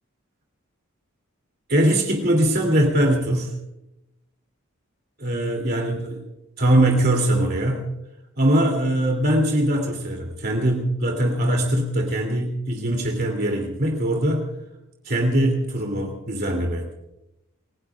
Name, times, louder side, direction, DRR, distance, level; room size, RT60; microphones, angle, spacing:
voice 1, 1.7-3.5 5.2-6.2 6.6-7.9 8.4-14.5 15.0-16.9, right 1 dB, 50° right, 1 dB, 2.9 m, -21 dB
29.0 x 18.0 x 2.5 m, 0.89 s
head